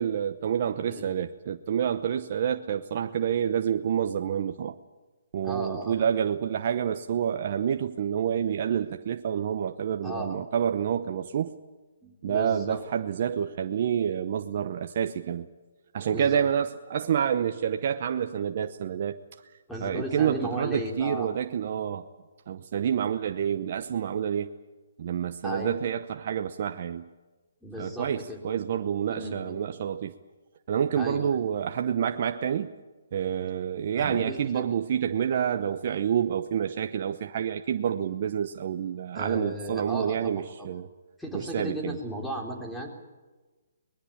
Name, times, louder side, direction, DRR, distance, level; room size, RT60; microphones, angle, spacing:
voice 1, 0.0-4.8 5.3-11.5 12.2-15.5 15.9-19.2 19.8-22.0 22.5-24.5 25.0-27.1 27.8-30.1 30.7-32.7 33.1-40.9 41.3-42.0, right 8 dB, 50° right, 7 dB, 0.9 m, -28 dB
voice 2, 5.4-6.0 10.0-10.4 12.0-12.9 16.1-16.4 19.7-21.3 25.4-25.9 27.6-28.4 29.1-29.6 31.0-31.4 34.0-34.7 39.1-40.7 41.2-42.9, equal, 5° left, 0 dB, 3.9 m, -36 dB
23.5 x 20.5 x 8.6 m, 1.2 s
hypercardioid pair, 150°, 0 cm